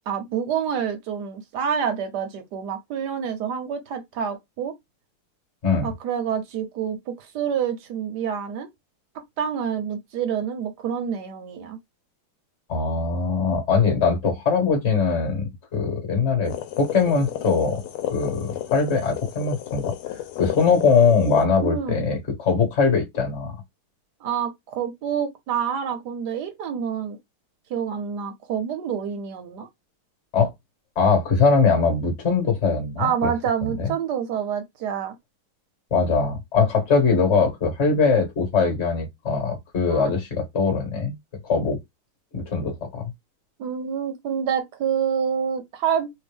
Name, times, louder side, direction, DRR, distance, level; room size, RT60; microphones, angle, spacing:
voice 1, 0.1-4.8 5.8-8.7 9.4-11.8 21.6-22.0 24.2-27.2 27.7-29.7 33.0-35.1 39.9-40.1 43.6-46.1, right 8 dB, 70° right, 1.0 m, -27 dB
voice 2, 12.7-19.9 20.4-23.5 30.3-30.5 30.9-33.3 33.6-33.9 35.9-41.1 41.4-41.8 42.3-43.0, left 5 dB, 35° left, 1.3 m, -21 dB
sound 1, 16.4-21.5, left 12 dB, 80° left, 1.5 m, -33 dB
3.4 x 2.2 x 3.3 m
omnidirectional pair, 2.4 m